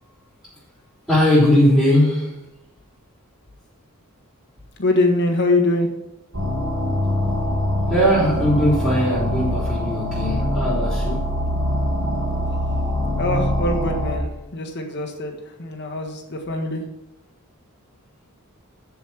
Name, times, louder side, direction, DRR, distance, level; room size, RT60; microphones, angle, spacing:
voice 1, 1.1-2.4 7.9-11.3, equal, ahead, -12 dB, 4.2 m, -19 dB
voice 2, 4.8-5.9 13.2-16.8, left 2 dB, 55° left, 2 dB, 1.6 m, -23 dB
sound 1, 6.3-14.1, left 1 dB, 85° right, 2.0 m, -23 dB
7.4 x 7.1 x 6.2 m, 0.90 s
head